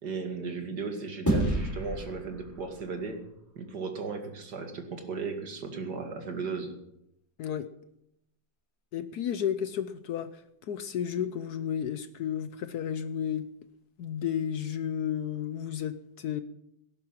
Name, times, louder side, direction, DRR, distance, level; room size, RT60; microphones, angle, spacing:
voice 1, 0.0-3.2 3.6-6.7, right 4 dB, 60° right, 4 dB, 2.6 m, -36 dB
sound 1, 1.3-3.9, right 1 dB, 10° left, 3.2 m, -31 dB
voice 2, 8.9-10.3 10.7-13.5 14.0-16.4, left 9 dB, 65° left, 12 dB, 1.1 m, -32 dB
17.5 x 10.5 x 5.8 m, 0.82 s
omnidirectional pair, 2.0 m